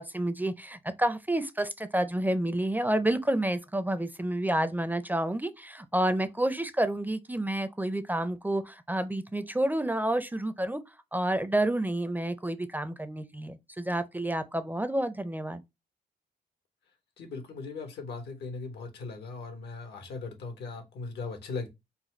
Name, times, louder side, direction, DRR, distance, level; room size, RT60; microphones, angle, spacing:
voice 1, 0.0-10.8 11.1-15.6, right 1 dB, 10° right, 0.4 m, -29 dB
voice 2, 17.2-21.7, left 4 dB, 85° left, 1.1 m, -38 dB
4.0 x 2.3 x 4.3 m
cardioid pair, 90°, 17 cm